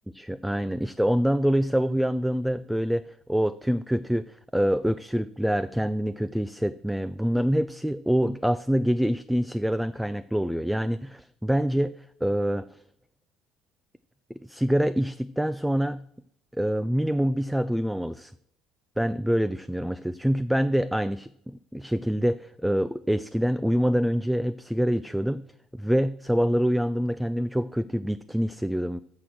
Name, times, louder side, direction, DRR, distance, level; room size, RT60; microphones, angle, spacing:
voice 1, 0.1-12.0 12.2-12.7 14.4-16.0 16.5-18.3 19.0-25.4 25.7-29.0, equal, 5° right, 13 dB, 0.3 m, -26 dB
6.8 x 6.3 x 7.6 m, 0.74 s
figure-of-eight pair, 55°, 0 cm